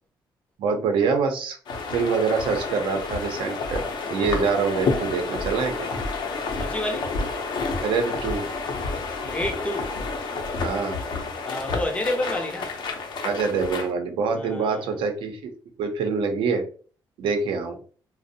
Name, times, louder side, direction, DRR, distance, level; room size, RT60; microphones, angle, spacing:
voice 1, 0.6-1.6 1.9-3.8 4.1-5.9 7.8-8.4 10.6-11.0 13.2-15.5 15.8-16.6 17.2-17.8, right 5 dB, 80° right, 0.6 m, -25 dB
sound 1, 1.7-13.9, left 3 dB, 60° left, 0.6 m, -30 dB
voice 2, 6.6-7.1 9.3-10.0 11.4-12.8 14.3-14.9, left 1 dB, 15° left, 0.6 m, -29 dB
2.5 x 2.0 x 2.6 m
cardioid pair, 120°, 8 cm